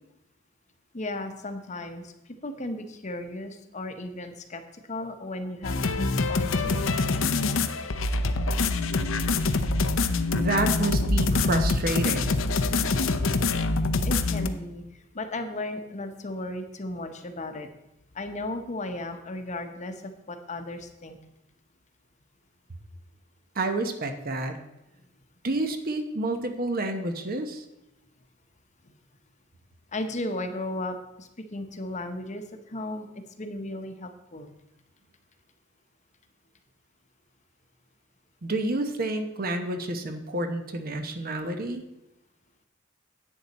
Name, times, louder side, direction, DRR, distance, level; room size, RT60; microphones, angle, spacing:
voice 1, 0.9-2.1 2.4-4.6 4.9-6.8 14.0-14.8 15.1-17.7 18.1-21.2 29.9-33.1 33.4-34.5, left 2 dB, 35° left, 7 dB, 0.9 m, -35 dB
sound 1, 5.6-14.5, left 3 dB, 70° left, 0.7 m, -25 dB
voice 2, 10.3-12.4 23.6-24.6 25.4-27.6 38.4-41.8, right 2 dB, 45° right, 7 dB, 0.9 m, -29 dB
10.5 x 8.4 x 4.2 m, 0.90 s
head